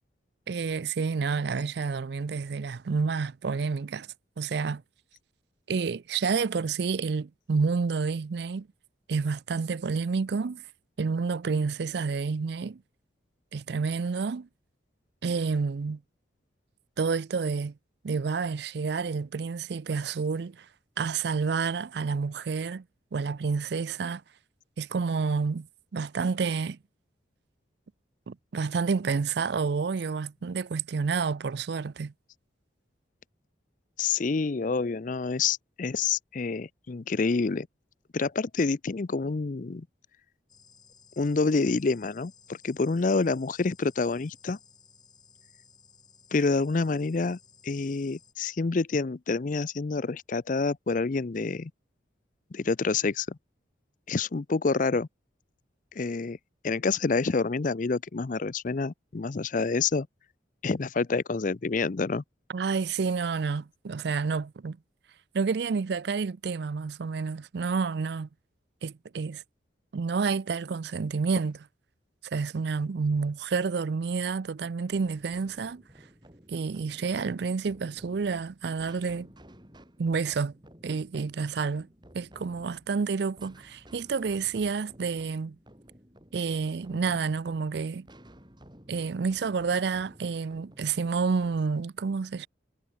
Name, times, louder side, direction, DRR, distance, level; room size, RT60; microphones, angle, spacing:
voice 1, 0.5-4.1 4.4-4.8 5.7-8.7 9.1-10.6 11.0-12.8 13.5-14.5 15.2-16.0 17.0-17.7 18.0-20.7 21.0-22.8 23.1-24.2 24.8-25.7 25.9-26.8 28.3-32.1 62.5-64.8 65.3-68.3 68.8-69.4 69.9-71.7 72.2-75.8 76.5-79.3 80.0-80.6 80.8-81.9 82.1-85.6 86.3-88.1 88.9-92.5, right 5 dB, 60° right, 0.4 m, -29 dB
voice 2, 34.0-37.7 38.1-39.9 41.2-44.6 46.3-47.4 47.6-51.7 52.5-53.4 54.1-55.1 56.0-56.4 56.6-60.1 60.6-62.2, left 4 dB, 45° left, 0.5 m, -27 dB
sound 1, 40.5-48.3, left 6 dB, 20° left, 5.8 m, -58 dB
sound 2, 74.9-91.6, equal, 25° right, 7.8 m, -54 dB
head